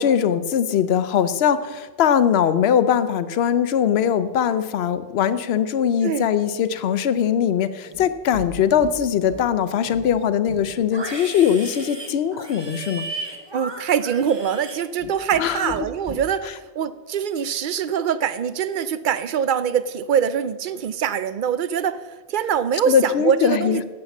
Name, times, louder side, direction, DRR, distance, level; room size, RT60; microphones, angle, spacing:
voice 1, 0.0-13.1 15.4-15.7 22.9-23.8, left 8 dB, 75° left, 13 dB, 0.9 m, -21 dB
Livestock farm animals working animals, 7.9-8.5 8.8-9.5 9.8-15.4 15.7-16.2, right 2 dB, 25° right, 1.2 m, -36 dB
voice 2, 13.5-22.0 22.3-23.8, right 8 dB, 60° right, 15 dB, 0.6 m, -23 dB
10.5 x 7.6 x 6.0 m, 1.3 s
omnidirectional pair, 1.1 m